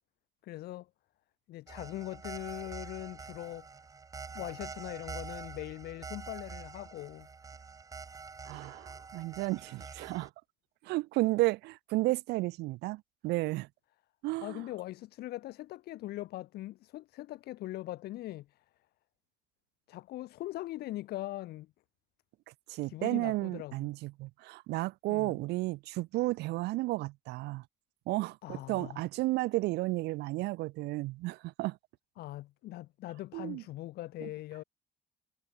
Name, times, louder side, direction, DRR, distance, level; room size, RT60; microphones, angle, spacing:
voice 1, 0.4-0.9 1.5-3.7 4.3-7.3 14.4-18.6 19.9-21.7 22.8-23.7 25.1-25.3 28.4-29.0 32.2-34.6, left 16 dB, 70° left, 0.8 m, -41 dB
sound 1, 1.7-10.3, right 5 dB, 20° right, 0.5 m, -46 dB
voice 2, 8.4-10.3 10.8-13.7 14.2-14.6 22.7-27.6 28.1-31.8 33.3-33.6 34.2-34.3, right 20 dB, 80° right, 0.4 m, -33 dB
cardioid pair, 110°, 17 cm